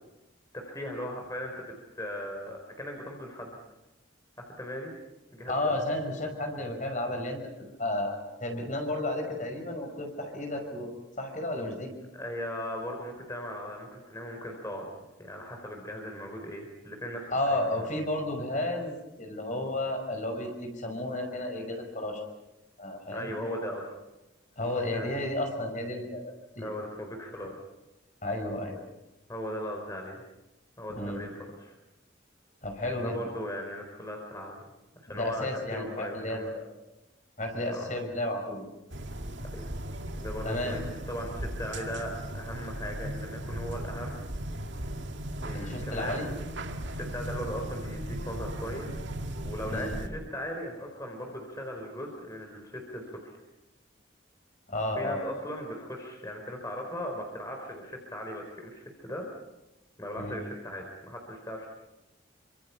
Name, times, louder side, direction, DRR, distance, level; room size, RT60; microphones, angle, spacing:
voice 1, 0.5-3.6 4.4-4.9 5.3-5.7 12.1-17.9 23.1-23.9 24.6-25.2 26.6-27.6 29.3-30.2 30.8-31.7 32.9-34.6 35.0-36.5 37.7-37.9 39.4-39.7 40.2-44.2 45.4-46.3 46.9-48.9 49.4-53.4 55.0-59.3 60.0-61.7, equal, 15° left, 2 dB, 4.2 m, -38 dB
voice 2, 5.5-7.4 7.8-11.9 17.3-22.2 22.8-23.4 24.6-26.7 28.2-28.8 30.9-31.3 32.6-33.2 35.1-36.7 37.4-38.7 40.4-40.8 45.5-46.3 49.6-50.0 54.7-55.3 60.2-60.4, left 1 dB, 40° left, 4 dB, 5.6 m, -32 dB
sound 1, 38.9-50.1, right 1 dB, 70° right, 2.2 m, -37 dB
28.5 x 26.0 x 5.7 m, 0.97 s
head